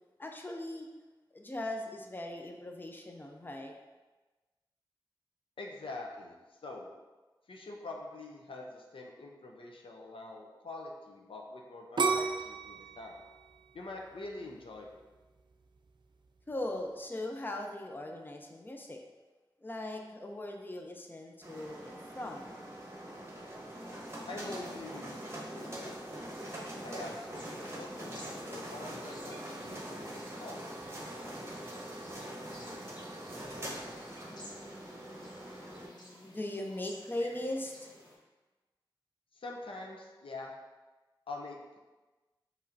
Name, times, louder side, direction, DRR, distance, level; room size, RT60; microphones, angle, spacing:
voice 1, 0.2-0.9 1.3-3.7 16.5-19.0 19.6-22.5 34.2-37.8, left 1 dB, 20° left, 2 dB, 0.5 m, -40 dB
voice 2, 5.6-6.9 7.5-13.2 13.7-15.0 24.3-26.2 26.8-30.6 39.3-40.5 41.3-41.8, left 2 dB, 80° left, 0 dB, 0.5 m, -45 dB
sound 1, 12.0-14.9 15.4-15.9, right 4 dB, 60° right, 0.4 m, -33 dB
sound 2, 21.4-35.9, right 1 dB, 30° right, 0.9 m, -43 dB
sound 3, 27.3-38.2, equal, 50° left, 1.1 m, -55 dB
5.4 x 3.1 x 2.6 m, 1.2 s
cardioid pair, 45°, 9 cm